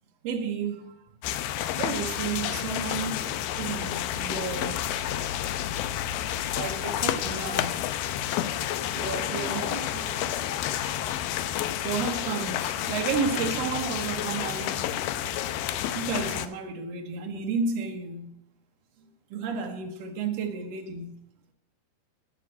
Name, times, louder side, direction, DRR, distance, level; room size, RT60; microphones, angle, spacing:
voice 1, 0.2-1.0 1.6-4.8 6.5-7.8 8.9-10.3 10.8-11.0 11.5-14.8 15.9-18.4 19.3-21.2, right 5 dB, 90° right, 1.4 m, -32 dB
sound 1, 1.2-16.5, left 11 dB, 80° left, 2.3 m, -30 dB
13.5 x 6.0 x 7.6 m
omnidirectional pair, 4.6 m